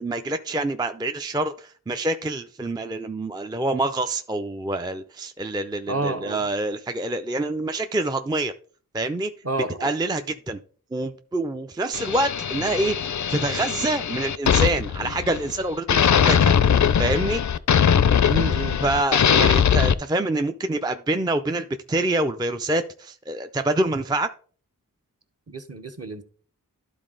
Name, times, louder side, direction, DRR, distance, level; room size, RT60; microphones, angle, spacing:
voice 1, 0.0-8.5 8.9-9.3 9.8-10.6 10.9-16.5 17.0-17.4 18.8-24.3, right 2 dB, 10° right, 8 dB, 0.4 m, -26 dB
voice 2, 5.9-6.4 9.4-9.9 18.3-18.8 25.5-26.2, right 2 dB, 45° right, 6 dB, 1.0 m, -29 dB
sound 1, 11.9-15.6 15.9-19.9, left 8 dB, 55° left, 0.4 m, -20 dB
12.0 x 4.0 x 3.8 m, 0.43 s
wide cardioid pair, 60°, 35 cm